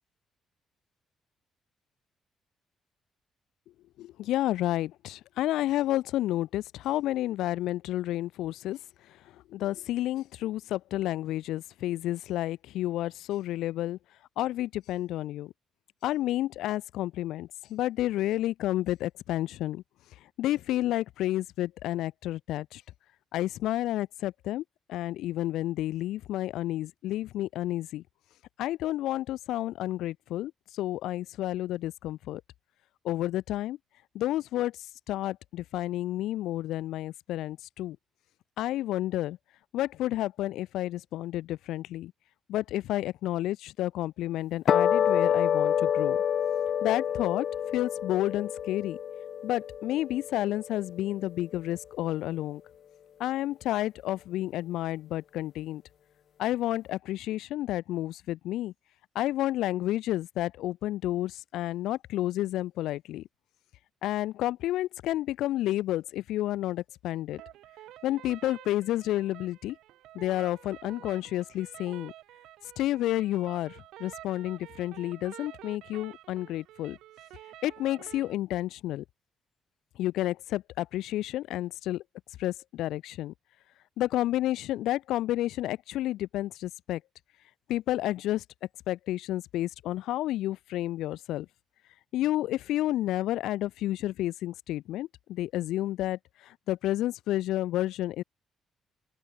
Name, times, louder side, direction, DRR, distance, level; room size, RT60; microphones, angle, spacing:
voice 1, 4.0-8.8 9.5-14.0 14.4-15.5 16.0-19.8 20.4-22.8 23.3-24.6 24.9-28.0 28.6-32.4 33.0-33.8 34.1-38.0 38.6-39.4 39.7-42.1 42.5-46.2 46.8-47.5 47.7-49.0 49.4-52.6 53.2-55.8 56.4-58.7 59.1-63.2 64.0-67.4 68.0-69.8 70.1-72.1 72.8-77.0 77.6-79.0 80.0-82.0 82.4-83.3 84.0-87.0 87.7-88.4 88.9-91.5 92.1-98.2, left 14 dB, 85° left, 2.3 m, -30 dB
sound 1, 44.7-51.2, left 9 dB, 65° left, 0.4 m, -28 dB
sound 2, 67.3-78.3, right 15 dB, 90° right, 6.0 m, -49 dB
open air
cardioid pair, 90°, 0 cm